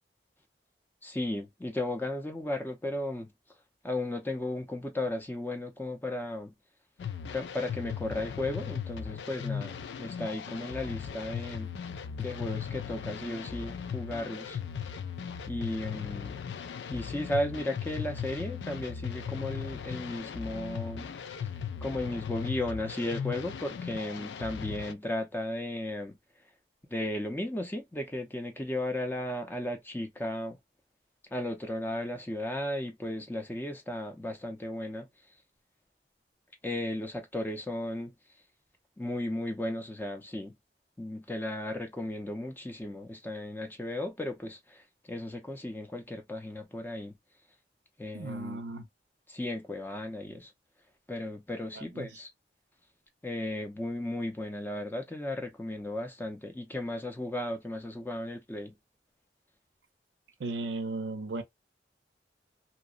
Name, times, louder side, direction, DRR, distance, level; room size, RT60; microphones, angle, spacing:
voice 1, 1.0-3.3 3.8-6.5 7.3-11.7 12.2-14.6 15.5-16.4 16.9-21.1 21.8-26.1 26.9-30.6 31.3-35.1 36.6-38.1 39.0-40.5 41.0-44.8 45.1-47.1 48.0-48.6 49.3-50.5 51.1-52.3 53.2-58.7, left 1 dB, 10° left, 0.5 m, -35 dB
sound 1, 7.0-24.9, left 7 dB, 80° left, 0.3 m, -38 dB
voice 2, 48.1-48.9 51.7-52.1 60.4-61.4, right 2 dB, 80° right, 0.5 m, -36 dB
2.8 x 2.1 x 2.3 m
head